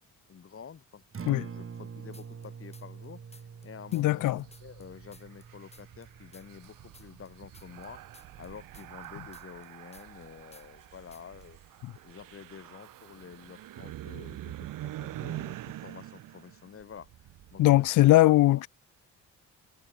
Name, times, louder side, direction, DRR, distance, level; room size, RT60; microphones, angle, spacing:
voice 1, 0.3-3.2 3.6-8.0 8.4-11.6 12.0-17.1 17.5-18.1 18.5-18.7, left 7 dB, 45° left, 2.5 m, -48 dB
Acoustic guitar, 1.0-9.2, right 6 dB, 45° right, 7.3 m, -47 dB
sound 1, 2.1-3.1 3.3-6.1 6.3-10.3 10.5-10.9 11.1-11.5, left 3 dB, 20° left, 4.6 m, -57 dB
voice 2, 3.9-4.4 17.6-18.7, left 16 dB, 70° left, 0.6 m, -20 dB
sound 2, 4.1-17.9, right 14 dB, 85° right, 3.5 m, -45 dB
cardioid pair, 95°, 32 cm